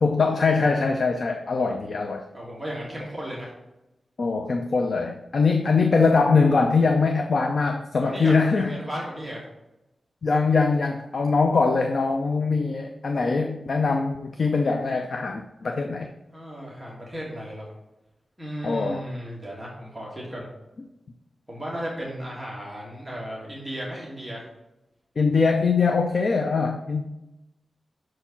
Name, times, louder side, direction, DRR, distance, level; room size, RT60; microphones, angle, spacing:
voice 1, 0.0-2.2 4.2-8.8 10.2-16.1 18.6-19.0 25.2-27.1, left 4 dB, 50° left, 5 dB, 0.5 m, -22 dB
voice 2, 2.3-3.5 8.0-9.4 16.3-17.7 18.4-20.5 21.5-24.4 25.3-25.5, equal, 5° right, -5 dB, 1.6 m, -35 dB
6.4 x 4.5 x 5.6 m, 0.96 s
wide cardioid pair, 180°, 0 cm